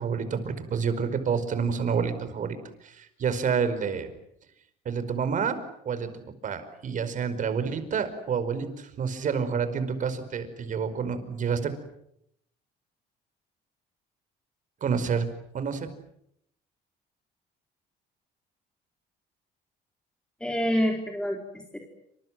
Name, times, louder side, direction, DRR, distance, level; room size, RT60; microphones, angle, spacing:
voice 1, 0.0-4.1 4.8-5.6 5.8-11.7 14.8-15.3 15.5-15.9, right 6 dB, 50° right, 11 dB, 5.0 m, -29 dB
voice 2, 20.4-21.8, equal, 5° left, 1 dB, 4.2 m, -27 dB
28.0 x 27.0 x 7.8 m, 0.75 s
cardioid pair, 110°, 17 cm